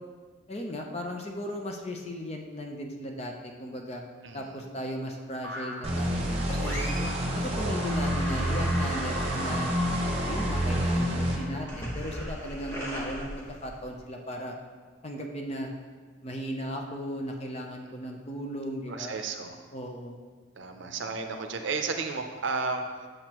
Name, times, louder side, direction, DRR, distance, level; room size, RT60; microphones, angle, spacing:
voice 1, 0.5-4.0 4.3-6.8 7.3-9.7 10.2-14.5 15.0-15.7 16.2-19.1 19.7-20.2, equal, 30° left, 2 dB, 0.6 m, -36 dB
voice 2, 4.2-4.6 18.9-19.6 20.6-23.1, right 4 dB, 60° right, 5 dB, 0.6 m, -33 dB
sound 1, 5.4-6.0 6.6-7.2 7.5-14.0, equal, 10° left, 1.0 m, -38 dB
sound 2, 5.8-11.4, equal, 30° right, 1.0 m, -28 dB
8.0 x 6.5 x 3.0 m, 1.5 s
head